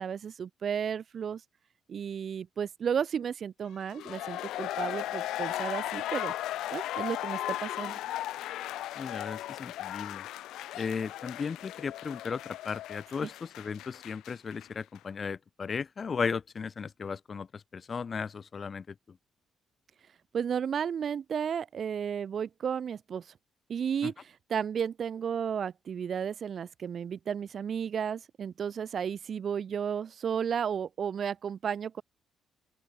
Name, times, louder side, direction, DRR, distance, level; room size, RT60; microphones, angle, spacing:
voice 1, 0.0-1.4 1.9-6.3 6.7-8.0 13.2-13.3 20.3-23.3 23.7-32.0, right 7 dB, 55° right, 2.0 m, -33 dB
sound 1, 3.8-14.7 14.9-15.0, left 14 dB, 85° left, 0.4 m, -36 dB
voice 2, 9.0-10.3 10.7-18.9 24.0-24.1, left 5 dB, 40° left, 1.0 m, -36 dB
open air
cardioid pair, 90°, 0 cm